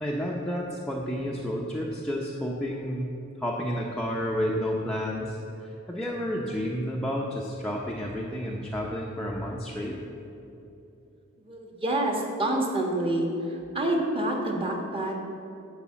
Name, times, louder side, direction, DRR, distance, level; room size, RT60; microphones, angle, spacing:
voice 1, 0.0-10.0, equal, 5° left, -4 dB, 0.7 m, -31 dB
voice 2, 11.5-13.3 13.7-15.2, right 1 dB, 25° right, 1 dB, 1.4 m, -27 dB
11.0 x 4.8 x 7.3 m, 2.8 s
head